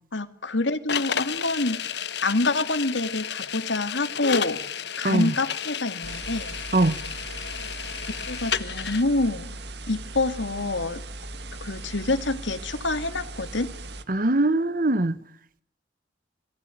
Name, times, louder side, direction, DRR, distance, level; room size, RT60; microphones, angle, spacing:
voice 1, 0.1-1.8 2.2-4.6 5.0-6.6 8.3-9.6 9.9-11.0 11.6-13.7, left 2 dB, 85° left, 2.3 m, -26 dB
sound 1, 0.9-9.0, left 8 dB, 65° left, 1.2 m, -32 dB
voice 2, 5.0-5.3 6.7-6.9 14.1-15.1, right 2 dB, 50° right, 1.3 m, -21 dB
sound 2, 6.0-14.1, right 2 dB, 65° right, 2.3 m, -39 dB
29.5 x 21.5 x 9.2 m
head